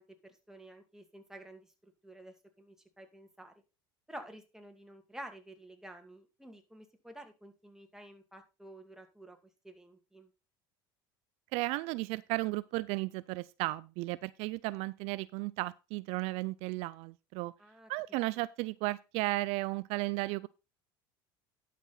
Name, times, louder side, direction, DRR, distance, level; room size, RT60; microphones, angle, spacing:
voice 1, 0.0-1.7 2.0-3.5 4.1-9.4 9.6-10.3 17.6-17.9, right 1 dB, 5° right, 2.3 m, -51 dB
voice 2, 11.5-17.5 17.9-20.5, right 21 dB, 70° right, 0.4 m, -34 dB
11.0 x 5.9 x 4.3 m
supercardioid pair, 85°, 11 cm